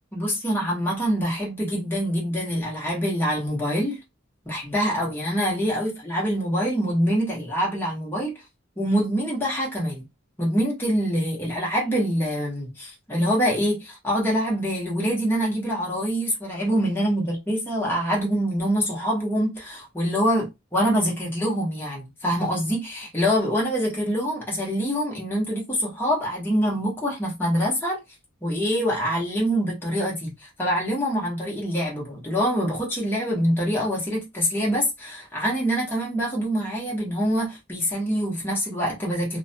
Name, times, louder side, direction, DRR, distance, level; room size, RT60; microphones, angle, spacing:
voice 1, 0.1-4.0 4.4-8.4 8.8-10.0 10.4-28.0 28.4-39.4, equal, 10° left, 0.9 m, -25 dB
2.4 x 2.1 x 2.7 m
head